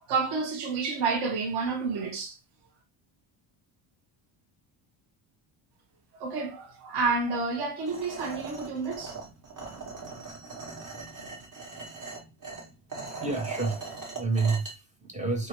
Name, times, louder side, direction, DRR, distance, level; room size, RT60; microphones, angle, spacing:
voice 1, 0.1-2.4 6.2-9.1, right 4 dB, 55° right, 0.9 m, -29 dB
sound 1, 7.9-14.7, right 4 dB, 40° right, 1.3 m, -40 dB
voice 2, 12.9-15.5, right 3 dB, 15° right, 0.4 m, -30 dB
2.9 x 2.5 x 2.9 m
cardioid pair, 145°, 47 cm